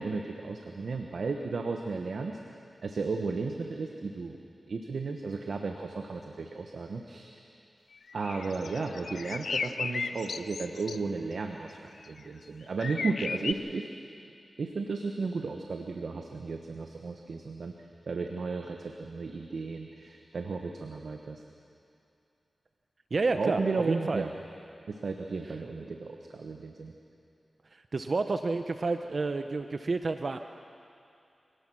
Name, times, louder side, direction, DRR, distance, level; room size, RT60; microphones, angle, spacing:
voice 1, 0.0-2.4 2.8-4.4 4.7-7.3 8.1-14.0 14.6-17.7 18.1-21.4 23.3-24.3 24.9-26.9, right 4 dB, 75° right, 3 dB, 1.3 m, -34 dB
sound 1, 8.1-11.0 12.0-12.2 12.8-13.5, left 5 dB, 80° left, 0.5 m, -35 dB
voice 2, 23.1-24.2 27.7-30.6, right 3 dB, 60° right, 8 dB, 0.7 m, -30 dB
26.5 x 18.0 x 6.3 m, 2.5 s
cardioid pair, 45°, 0 cm